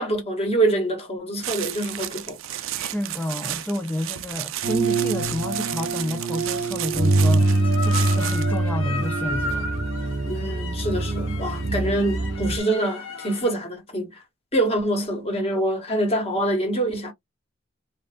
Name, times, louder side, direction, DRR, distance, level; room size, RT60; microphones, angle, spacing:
voice 1, 0.0-2.6 10.3-14.2 14.5-17.1, right 1 dB, 30° left, 1.1 m, -25 dB
sound 1, 1.4-8.6, right 13 dB, 90° right, 0.4 m, -33 dB
voice 2, 2.8-7.5 7.8-9.7, left 1 dB, 10° left, 0.3 m, -30 dB
sound 2, 4.6-12.6, right 2 dB, 50° right, 0.8 m, -24 dB
sound 3, 7.4-13.5, left 2 dB, 90° left, 0.9 m, -35 dB
3.1 x 2.3 x 2.4 m
head